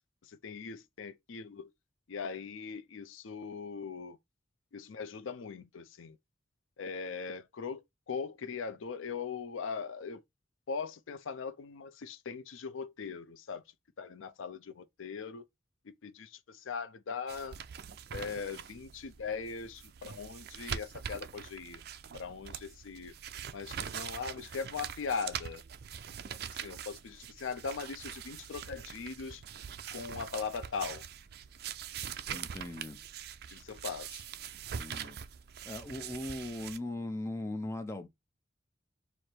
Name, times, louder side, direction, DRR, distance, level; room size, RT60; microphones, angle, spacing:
voice 1, 0.4-1.7 2.1-4.2 4.7-6.2 6.8-7.8 8.1-10.2 10.7-13.6 14.0-15.4 15.9-17.6 18.1-21.8 22.1-23.1 23.5-25.6 26.3-29.4 29.9-31.0 32.3-32.4 33.5-34.2, left 5 dB, 85° left, 0.5 m, -40 dB
sound 1, 17.3-36.8, right 8 dB, 55° right, 0.4 m, -43 dB
voice 2, 32.3-33.0 34.8-35.2 35.6-38.1, left 1 dB, 15° left, 0.5 m, -39 dB
4.8 x 2.1 x 4.3 m
head